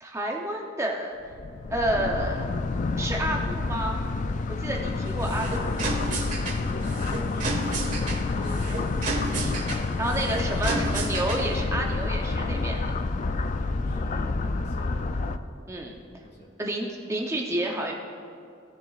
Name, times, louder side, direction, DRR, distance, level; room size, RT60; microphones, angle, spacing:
voice 1, 0.0-1.1 1.7-2.4 3.0-4.0 4.5-5.7 9.3-12.8 15.7-15.9 16.6-17.9, right 1 dB, 15° right, 0 dB, 0.6 m, -30 dB
sound 1, 1.3-15.4, left 3 dB, 40° left, 0.3 m, -28 dB
sound 2, 5.0-11.6, right 2 dB, 40° right, 1.4 m, -33 dB
voice 2, 6.7-8.7 13.3-15.1 16.2-16.5, equal, 55° left, -1 dB, 1.9 m, -46 dB
17.0 x 7.0 x 2.4 m, 2.4 s
head